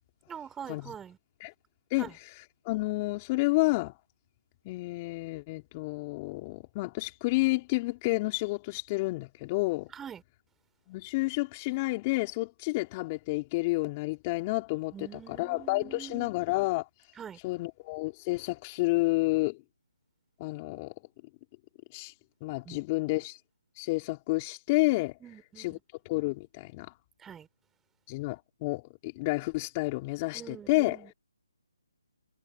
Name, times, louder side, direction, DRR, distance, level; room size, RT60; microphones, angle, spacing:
voice 1, 0.3-1.2 2.0-2.1 10.0-10.2 14.9-16.3 17.2-17.4 22.7-22.8 25.2-25.8 27.2-27.5 30.3-31.1, right 8 dB, 10° right, 5.8 m, -44 dB
voice 2, 1.9-3.9 4.6-9.9 10.9-16.9 17.4-19.6 20.4-20.9 21.9-22.1 22.4-23.4 23.8-25.2 25.6-25.8 26.0-26.9 28.1-31.1, left 23 dB, 25° left, 4.5 m, -30 dB
figure-of-eight pair, 150°, 2 cm